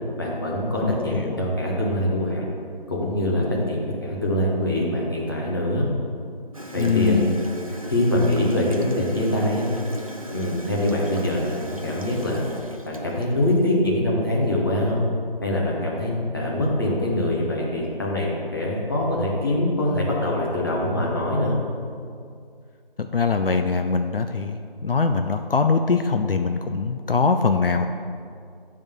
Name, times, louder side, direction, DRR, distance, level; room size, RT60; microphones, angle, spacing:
voice 1, 0.2-2.5 2.9-5.9 6.7-7.2 7.9-9.6 10.3-12.5 12.8-15.0 15.4-21.6, left 1 dB, 25° left, -5 dB, 1.0 m, -24 dB
voice 2, 0.8-1.4 6.8-7.3 23.0-27.9, left 4 dB, 70° left, 6 dB, 0.5 m, -22 dB
Gurgling / Toilet flush, 6.5-13.6, right 1 dB, 35° right, 0.5 m, -37 dB
8.7 x 3.6 x 6.0 m, 2.3 s
figure-of-eight pair, 170°, 29 cm